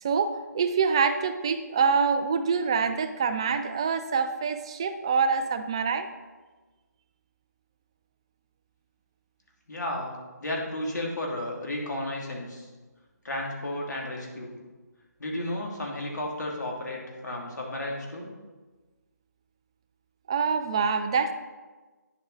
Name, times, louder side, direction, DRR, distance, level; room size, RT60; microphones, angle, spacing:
voice 1, 0.0-6.1 20.3-21.3, right 5 dB, 15° right, 8 dB, 0.3 m, -25 dB
voice 2, 9.7-10.1 10.4-12.7 13.2-14.5 15.2-18.3, left 1 dB, 70° left, -1 dB, 2.7 m, -33 dB
9.8 x 7.2 x 4.0 m, 1.3 s
figure-of-eight pair, 160°, 10 cm